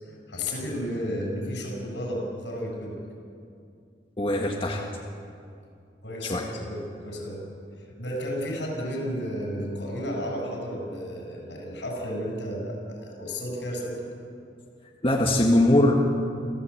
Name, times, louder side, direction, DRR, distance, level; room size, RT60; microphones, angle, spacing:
voice 1, 0.0-3.0 6.0-6.3 6.6-7.5 8.0-14.0, equal, 85° left, 1 dB, 7.8 m, -32 dB
voice 2, 4.2-4.8 6.2-6.5 15.0-15.9, left 1 dB, 30° left, -1 dB, 1.8 m, -21 dB
27.0 x 15.0 x 8.7 m, 2.4 s
head